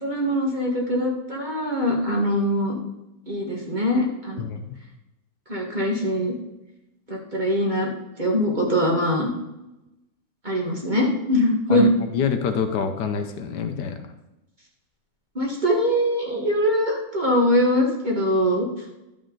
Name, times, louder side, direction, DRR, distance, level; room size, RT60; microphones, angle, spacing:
voice 1, 0.0-2.7 3.3-4.4 5.5-6.3 7.1-7.9 8.2-9.3 10.4-11.9 15.3-18.7, left 1 dB, 25° right, -2 dB, 1.4 m, -22 dB
voice 2, 4.4-4.8 11.7-14.1, left 6 dB, 70° left, 7 dB, 1.4 m, -26 dB
11.0 x 5.3 x 3.8 m, 0.95 s
omnidirectional pair, 1.9 m